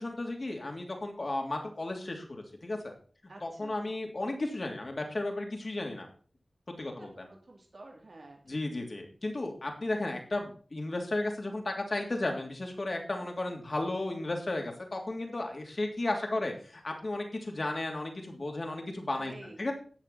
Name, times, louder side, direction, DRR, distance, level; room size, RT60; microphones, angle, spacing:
voice 1, 0.0-2.9 3.4-6.1 6.8-7.3 8.4-19.7, left 2 dB, 55° left, 2 dB, 3.1 m, -34 dB
voice 2, 3.3-3.9 7.0-8.6 19.2-19.6, right 2 dB, 65° right, 0 dB, 3.0 m, -50 dB
13.0 x 8.5 x 4.2 m, 0.42 s
wide cardioid pair, 50°, 0 cm